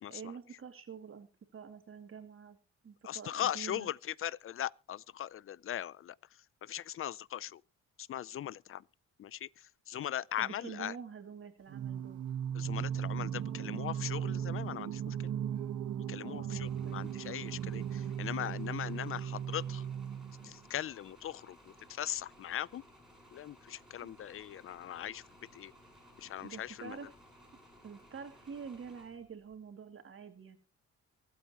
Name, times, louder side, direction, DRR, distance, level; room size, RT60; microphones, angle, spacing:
voice 1, 0.1-2.6 2.8-3.9 10.0-10.1 10.4-12.2 16.2-17.2 24.0-24.1 26.4-27.1 27.8-30.6, right 6 dB, 45° right, 2.6 m, -47 dB
voice 2, 3.0-6.2 6.6-7.6 8.0-8.8 9.2-10.9 12.5-15.3 16.1-19.9 20.4-22.8 23.3-25.2 25.5-25.7 26.2-27.1, left 11 dB, 45° left, 0.5 m, -39 dB
Singing, 11.7-20.6, right 9 dB, 75° right, 1.4 m, -37 dB
sound 1, 16.6-29.6, equal, ahead, 7.4 m, -59 dB
24.0 x 8.7 x 3.0 m
cardioid pair, 90°, 30 cm